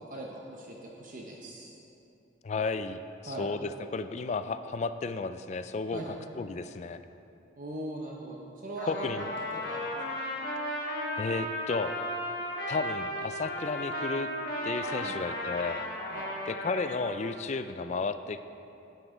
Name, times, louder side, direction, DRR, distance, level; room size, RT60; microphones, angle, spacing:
voice 1, 0.0-1.8 3.2-3.5 5.9-6.2 7.6-9.3 9.5-10.0 15.0-15.3 16.1-16.3, right 1 dB, 45° right, -1 dB, 0.8 m, -40 dB
voice 2, 2.4-6.0 6.4-7.0 8.9-9.3 11.2-11.9 12.7-14.3 14.6-15.8 16.5-18.4, left 4 dB, 35° left, 11 dB, 0.3 m, -33 dB
Trumpet, 8.8-17.2, left 1 dB, 50° left, 1.5 m, -35 dB
11.0 x 8.0 x 3.9 m, 2.8 s
head